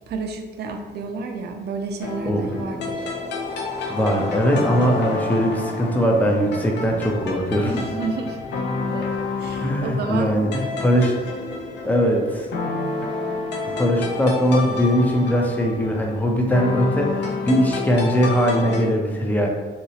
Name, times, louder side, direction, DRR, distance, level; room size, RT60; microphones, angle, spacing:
voice 1, 0.1-3.1 7.7-8.4 8.9-9.1 9.4-10.3, right 4 dB, 60° right, 4 dB, 0.4 m, -30 dB
sound 1, 2.0-18.9, left 3 dB, 65° left, 0.5 m, -29 dB
voice 2, 3.9-7.8 9.6-11.1 11.8-12.5 13.8-19.5, equal, 10° left, 1 dB, 0.4 m, -20 dB
3.1 x 2.8 x 2.8 m, 1.4 s
cardioid pair, 155°, 19 cm